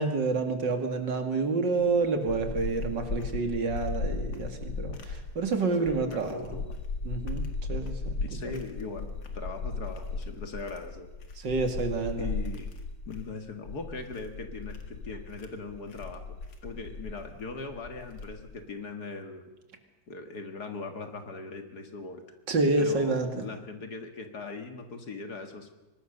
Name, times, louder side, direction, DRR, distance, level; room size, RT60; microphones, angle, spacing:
voice 1, 0.0-6.6 7.0-8.5 11.4-12.3 22.5-23.5, right 3 dB, 70° right, 6 dB, 2.9 m, -29 dB
sound 1, 1.8-18.6, left 3 dB, 75° left, 2.6 m, -37 dB
voice 2, 5.8-6.6 8.2-11.1 12.2-12.7 13.1-16.4 16.6-19.4 20.1-22.2 22.8-25.7, left 4 dB, 55° left, 6 dB, 2.4 m, -40 dB
23.5 x 19.5 x 6.7 m, 1.0 s
omnidirectional pair, 2.0 m